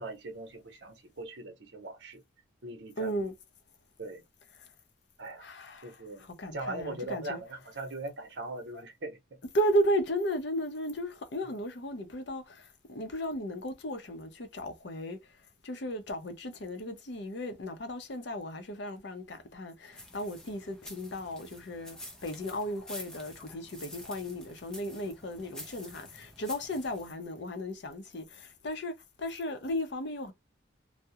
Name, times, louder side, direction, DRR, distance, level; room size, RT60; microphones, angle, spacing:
voice 1, 0.0-2.2 2.6-3.3 4.0-4.2 5.2-5.5 5.8-9.2, right 2 dB, 60° right, 0.8 m, -40 dB
voice 2, 3.0-3.3 5.4-7.4 9.5-15.2 15.6-22.0 22.2-30.3, equal, 60° left, 0.6 m, -35 dB
sound 1, 19.9-27.1, equal, 5° left, 0.4 m, -48 dB
2.3 x 2.0 x 2.7 m
head